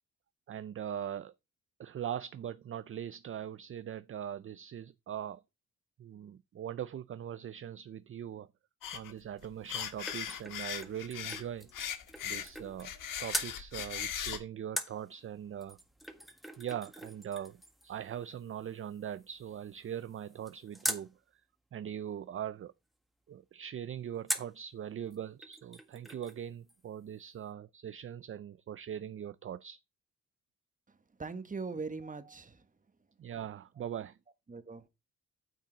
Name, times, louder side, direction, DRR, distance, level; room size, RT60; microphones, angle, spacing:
voice 1, 0.5-1.3 1.8-5.4 6.0-8.5 8.9-11.7 12.2-15.8 16.6-21.4 21.7-22.7 23.3-29.8 33.2-34.2, right 9 dB, 40° right, 0.5 m, -41 dB
sound 1, 8.8-9.1 9.4-11.4 11.7-14.4, left 9 dB, 85° left, 1.6 m, -38 dB
sound 2, 9.4-13.0 13.3-13.6 14.8-21.1 24.3-24.6 25.1-25.2 25.4-26.4 26.7-26.8, equal, ahead, 1.6 m, -42 dB
voice 2, 31.2-32.7 34.5-34.9, right 4 dB, 25° right, 1.3 m, -40 dB
9.1 x 7.2 x 4.0 m
cardioid pair, 95°, 32 cm